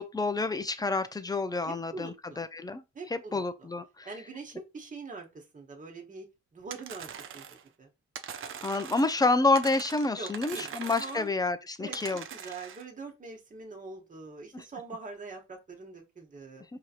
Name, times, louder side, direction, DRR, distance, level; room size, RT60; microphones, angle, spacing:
voice 1, 0.0-2.8 3.1-4.1 8.6-12.2 14.5-14.6, left 3 dB, 15° left, 0.5 m, -28 dB
voice 2, 1.6-2.4 2.9-3.7 4.0-6.3 6.5-7.9 10.1-11.3 11.8-16.6, right 3 dB, 25° right, 1.1 m, -44 dB
sound 1, 6.7-7.7 8.1-9.3 9.5-11.3 11.9-12.8, right 8 dB, 45° right, 0.5 m, -42 dB
4.8 x 2.8 x 2.4 m
cardioid pair, 90°, 30 cm